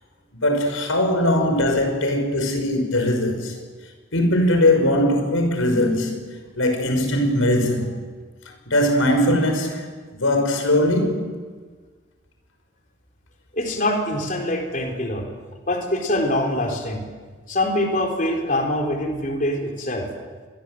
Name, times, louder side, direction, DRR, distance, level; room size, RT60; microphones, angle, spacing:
voice 1, 0.4-3.5 4.1-8.0 8.7-9.9 10.2-11.3, left 1 dB, 80° left, 5.8 m, -20 dB
voice 2, 13.5-15.3 15.7-17.0 17.5-20.1, left 1 dB, 40° left, 4.1 m, -24 dB
28.0 x 22.0 x 7.9 m
head